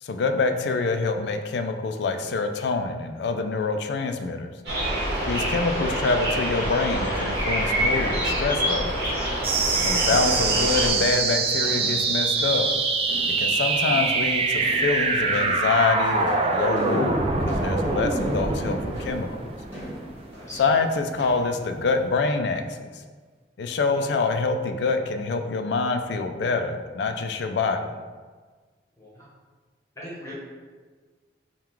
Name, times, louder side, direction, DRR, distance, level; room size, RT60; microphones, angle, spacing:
voice 1, 0.0-4.5 5.3-8.9 9.8-12.7 13.4-19.5 20.6-23.0 23.6-27.9, left 4 dB, 70° left, 7 dB, 0.3 m, -26 dB
sound 1, 4.7-10.9, equal, 70° right, 1.3 m, -26 dB
sound 2, 8.6-22.1, equal, 15° right, 1.5 m, -43 dB
sound 3, 9.4-20.5, right 3 dB, 30° right, 0.3 m, -24 dB
voice 2, 10.0-10.3 13.5-13.8 20.3-20.7 23.9-24.2 29.0-29.2 29.9-30.3, equal, 15° left, -7 dB, 0.9 m, -41 dB
3.7 x 2.3 x 4.4 m, 1.5 s
head